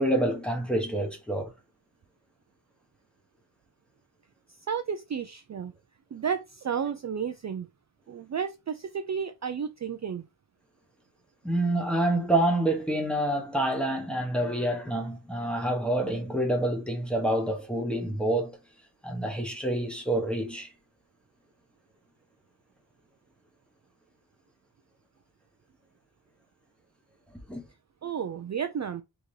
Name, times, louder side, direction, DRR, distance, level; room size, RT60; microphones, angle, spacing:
voice 1, 0.0-1.5 11.4-18.6 19.0-20.7 27.5-27.6, right 1 dB, ahead, 1.0 m, -27 dB
voice 2, 4.7-5.7 6.1-7.7 8.1-10.3 28.0-29.0, right 7 dB, 40° right, 0.4 m, -32 dB
4.0 x 3.6 x 3.2 m
wide cardioid pair, 125°, 43 cm